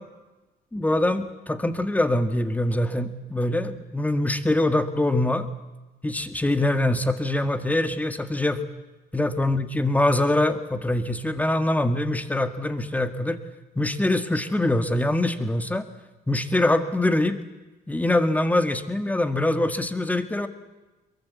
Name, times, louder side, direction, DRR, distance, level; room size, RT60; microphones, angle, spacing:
voice 1, 0.7-5.5 6.0-8.6 9.1-13.4 13.8-15.9 16.3-17.4 17.9-20.5, left 1 dB, 10° left, 9 dB, 1.8 m, -24 dB
23.5 x 22.5 x 8.3 m, 1.1 s
cardioid pair, 110°, 17 cm